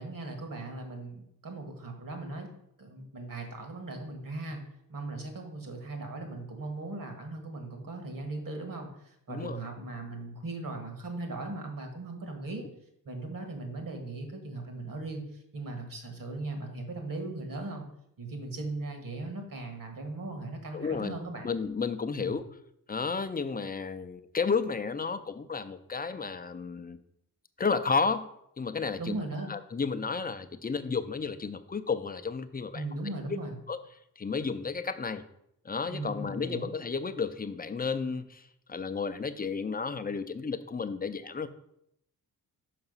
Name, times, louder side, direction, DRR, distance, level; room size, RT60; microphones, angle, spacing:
voice 1, 0.0-2.5 2.8-4.6 4.9-12.7 13.1-17.9 18.2-21.5 22.2-22.3 29.0-29.5 32.7-33.6 35.9-36.7, right 2 dB, 55° right, 4 dB, 1.7 m, -38 dB
voice 2, 9.3-9.6 20.7-21.2 21.4-22.4 22.9-27.0 27.6-28.3 28.6-29.2 29.5-32.8 33.3-33.4 33.7-33.8 34.2-35.2 35.6-38.4 38.7-41.5, left 5 dB, 25° left, 11 dB, 0.5 m, -32 dB
5.9 x 5.4 x 5.4 m, 0.75 s
cardioid pair, 90°, 39 cm